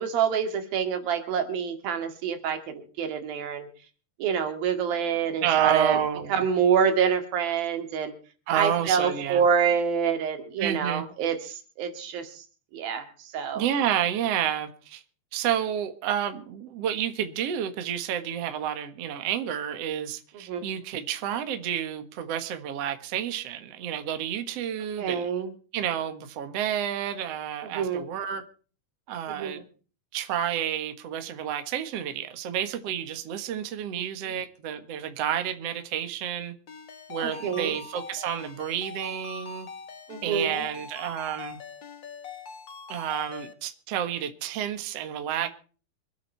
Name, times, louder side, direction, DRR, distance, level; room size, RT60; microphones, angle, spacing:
voice 1, 0.0-3.7 4.2-6.0 6.3-8.1 8.5-12.4 12.7-13.1 13.3-13.6 20.5-20.6 25.0-25.5 27.7-28.0 29.3-29.5 34.0-34.1 37.2-37.8 40.1-40.7, right 7 dB, 75° right, 3.8 m, -26 dB
voice 2, 5.4-6.4 8.5-9.4 10.6-11.0 13.5-15.0 15.3-25.3 25.7-28.4 29.1-29.6 30.1-36.5 37.1-39.7 40.2-41.6 42.9-45.5, right 10 dB, 55° right, 2.1 m, -30 dB
Ringtone, 36.7-43.5, left 5 dB, 50° left, 1.5 m, -42 dB
25.5 x 9.0 x 4.5 m
omnidirectional pair, 4.2 m